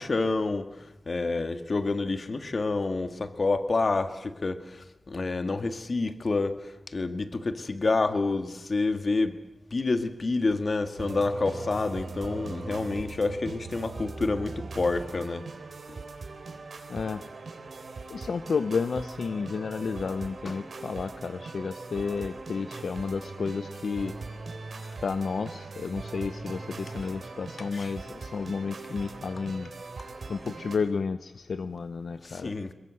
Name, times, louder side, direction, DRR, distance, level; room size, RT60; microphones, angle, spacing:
voice 1, 0.0-9.4 9.7-15.4 15.9-16.0 20.4-20.6 27.7-27.9 32.2-32.7, left 3 dB, 50° left, 8 dB, 1.9 m, -28 dB
sound 1, 11.0-30.8, right 3 dB, 75° right, 3.4 m, -40 dB
voice 2, 16.9-17.2 18.1-24.1 25.0-29.7 30.3-32.5, left 5 dB, 80° left, 10 dB, 0.8 m, -31 dB
23.5 x 21.5 x 7.8 m, 0.93 s
wide cardioid pair, 105°, 0 cm